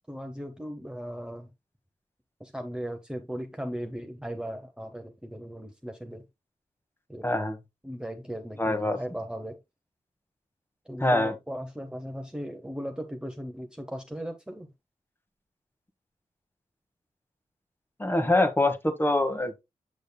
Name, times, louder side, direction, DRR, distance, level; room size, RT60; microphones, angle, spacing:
voice 1, 0.1-1.5 2.4-6.2 7.1-7.2 7.8-9.6 10.9-14.7, equal, 5° right, 0.9 m, -37 dB
voice 2, 7.2-7.6 8.6-9.0 11.0-11.3 18.0-19.6, left 1 dB, 15° left, 1.2 m, -24 dB
7.1 x 6.3 x 2.2 m
cardioid pair, 45°, 13 cm